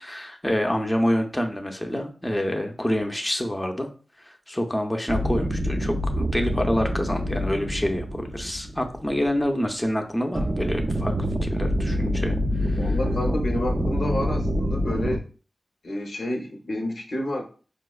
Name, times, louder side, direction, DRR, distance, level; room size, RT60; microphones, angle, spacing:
voice 1, 0.0-3.9 4.2-11.1 11.4-12.4 12.6-12.8, equal, 15° left, 4 dB, 0.5 m, -27 dB
sound 1, 5.1-9.4 10.3-15.2, equal, 55° right, 0.3 m, -26 dB
voice 2, 12.7-15.2 15.8-17.4, left 1 dB, 80° left, 1 dB, 0.7 m, -29 dB
4.5 x 2.1 x 2.3 m, 0.39 s
cardioid pair, 45°, 0 cm